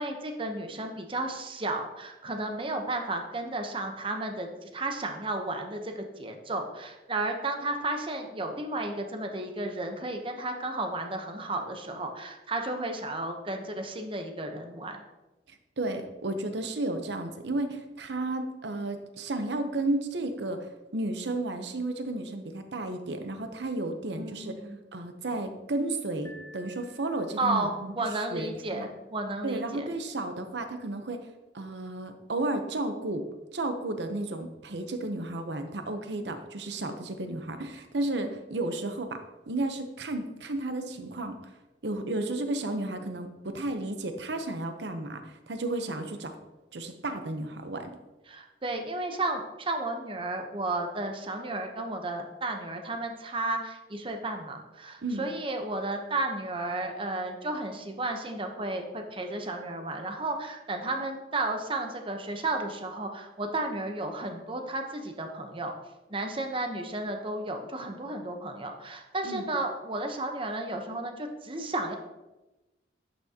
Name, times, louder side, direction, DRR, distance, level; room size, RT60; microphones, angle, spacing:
voice 1, 0.0-15.0 24.1-24.8 27.4-29.9 48.3-65.7 66.1-72.0, right 2 dB, 30° right, 4 dB, 0.8 m, -33 dB
voice 2, 15.8-24.5 24.9-27.9 28.3-28.9 29.4-31.2 31.5-33.3 33.5-39.2 39.5-41.4 41.8-46.3 46.7-48.0 55.0-55.3 69.2-69.4, right 2 dB, 80° right, 7 dB, 0.8 m, -33 dB
Piano, 26.2-27.5, equal, 15° left, 1.4 m, -51 dB
11.0 x 6.1 x 2.8 m, 1.1 s
head